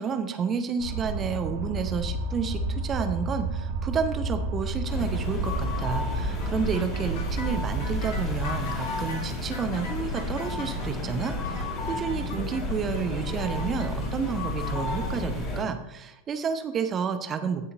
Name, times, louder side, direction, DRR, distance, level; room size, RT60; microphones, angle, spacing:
voice 1, 0.0-17.7, right 6 dB, 25° right, 9 dB, 0.8 m, -31 dB
sound 1, 0.8-8.5, right 2 dB, 65° right, 2.4 m, -31 dB
sound 2, 4.9-15.6, left 2 dB, 25° left, 3.5 m, -32 dB
sound 3, 6.4-15.0, left 3 dB, 55° left, 2.6 m, -43 dB
16.0 x 6.9 x 2.6 m, 0.90 s
figure-of-eight pair, 90°, 0 cm